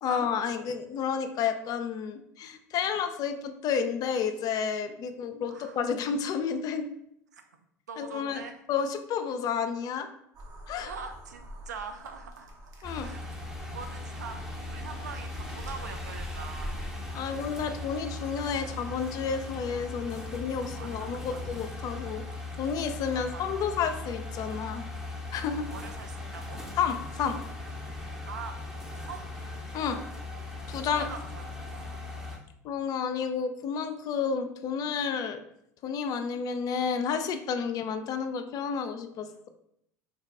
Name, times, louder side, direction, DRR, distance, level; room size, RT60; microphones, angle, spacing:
voice 1, 0.0-6.9 8.0-8.4 8.7-10.1 10.7-10.9 12.8-13.1 17.1-22.2 22.6-24.9 25.3-25.7 26.8-27.4 29.7-30.0 30.7-31.0 32.6-35.4 35.8-39.5, left 6 dB, 45° left, 8 dB, 0.3 m, -31 dB
voice 2, 5.5-5.8 7.3-7.4 7.9-8.5 10.9-12.7 13.0-16.9 20.6-21.4 23.1-23.6 25.7-26.6 28.3-28.6 29.0-29.3 30.9-31.4 31.7-31.8 39.3-39.5, right 5 dB, 85° right, 5 dB, 0.4 m, -43 dB
sound 1, 10.3-16.9, equal, 40° right, 0.7 m, -44 dB
sound 2, 12.8-32.4, left 2 dB, 5° right, 0.7 m, -39 dB
2.6 x 2.2 x 3.5 m, 0.74 s
hypercardioid pair, 75°, 9 cm